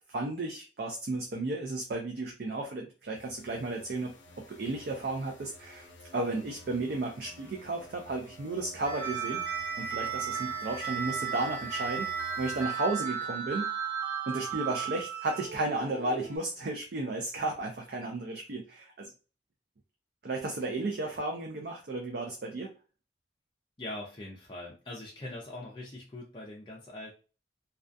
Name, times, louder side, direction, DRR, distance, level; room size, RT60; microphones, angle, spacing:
voice 1, 0.1-4.1 4.5-5.9 6.1-9.4 9.8-13.7 14.3-19.1 20.2-22.7, right 2 dB, 60° right, 1 dB, 0.4 m, -33 dB
sound 1, 3.1-12.7, left 1 dB, 90° left, 0.5 m, -52 dB
sound 2, 8.8-16.4, right 7 dB, 10° right, 0.8 m, -35 dB
voice 2, 23.8-27.1, left 1 dB, 25° left, -3 dB, 0.4 m, -42 dB
2.3 x 2.2 x 2.5 m, 0.35 s
head